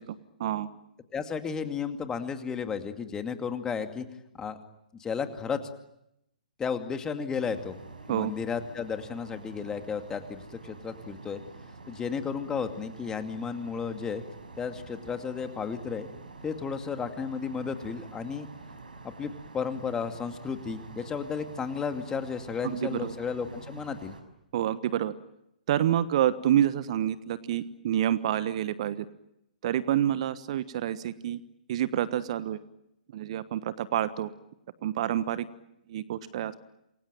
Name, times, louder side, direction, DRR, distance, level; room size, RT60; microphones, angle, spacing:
voice 1, 1.1-4.0 4.3-4.6 5.0-5.6 6.6-7.8 8.1-11.4 11.9-14.2 14.6-16.1 16.4-18.5 19.0-24.2, left 6 dB, 15° left, 7 dB, 2.4 m, -33 dB
sound 1, 7.3-24.2, right 3 dB, 75° right, 6.0 m, -47 dB
voice 2, 22.6-23.1 24.5-25.1 25.7-29.1 29.6-31.4 31.7-32.6 33.1-34.3 34.8-35.5 35.9-36.5, right 11 dB, 45° right, 15 dB, 1.3 m, -28 dB
28.5 x 23.0 x 9.1 m, 0.84 s
figure-of-eight pair, 120°, 5 cm